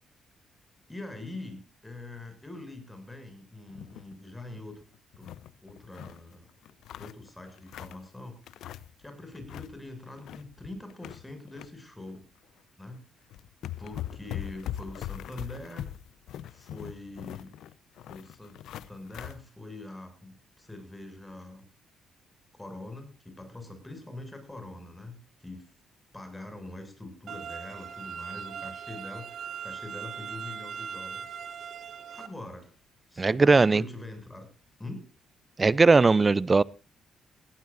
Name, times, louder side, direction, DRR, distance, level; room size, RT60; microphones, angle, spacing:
voice 1, 0.9-4.8 5.1-5.3 5.6-6.5 7.0-8.4 9.0-12.3 12.8-13.0 13.8-15.9 16.4-17.6 18.1-21.7 22.5-25.7 26.1-31.4 31.8-32.7 33.1-34.5 34.8-35.1, left 2 dB, 10° left, 7.4 m, -43 dB
sound 1, 3.7-4.1 4.5-4.6 4.9-6.2 6.6-8.1 8.5-9.0 9.3-9.7 10.1-11.7 12.1-12.2 12.9-13.0 13.3-19.4, left 11 dB, 80° left, 0.8 m, -41 dB
sound 2, 27.3-32.3, right 7 dB, 65° right, 2.3 m, -39 dB
voice 2, 33.2-33.8 35.6-36.6, right 3 dB, 25° right, 0.6 m, -19 dB
19.0 x 17.0 x 2.7 m
cardioid pair, 90°, 0 cm